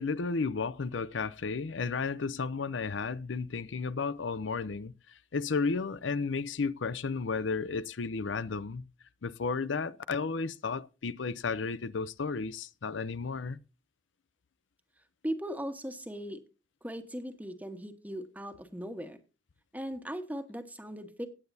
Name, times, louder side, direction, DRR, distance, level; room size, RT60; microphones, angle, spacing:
voice 1, 0.0-4.9 5.3-8.8 9.2-13.6, left 4 dB, 85° left, 0.6 m, -33 dB
voice 2, 15.2-16.4 16.8-19.2 19.7-21.3, equal, 10° right, 1.4 m, -38 dB
17.5 x 8.9 x 2.7 m
head